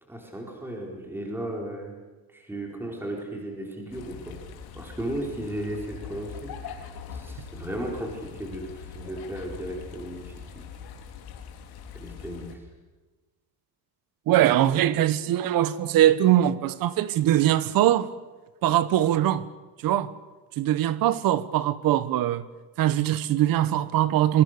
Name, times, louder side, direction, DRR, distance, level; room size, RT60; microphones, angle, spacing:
voice 1, 0.1-2.0 2.3-4.4 4.7-10.7 11.9-12.6, right 1 dB, 5° right, 4.4 m, -35 dB
sound 1, 3.9-12.6, left 6 dB, 70° left, 3.4 m, -42 dB
voice 2, 14.3-18.1 18.6-19.4 19.8-20.1 20.6-22.4 22.8-24.4, right 12 dB, 60° right, 1.3 m, -22 dB
27.0 x 23.5 x 6.7 m
cardioid pair, 175°, 39 cm